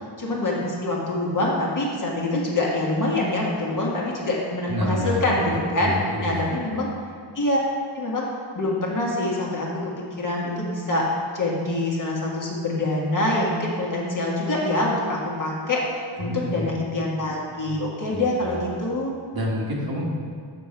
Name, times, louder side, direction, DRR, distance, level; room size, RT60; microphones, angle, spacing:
voice 1, 0.2-5.9 6.2-6.9 7.3-7.6 7.9-8.2 8.5-11.1 11.3-15.9 16.2-19.1, left 2 dB, 40° left, -4 dB, 1.6 m, -25 dB
voice 2, 4.7-5.4 5.8-6.6 16.2-16.7 18.1-18.9 19.3-20.1, equal, 50° right, -3 dB, 1.6 m, -29 dB
6.8 x 5.5 x 4.4 m, 2.1 s
cardioid pair, 80°, 46 cm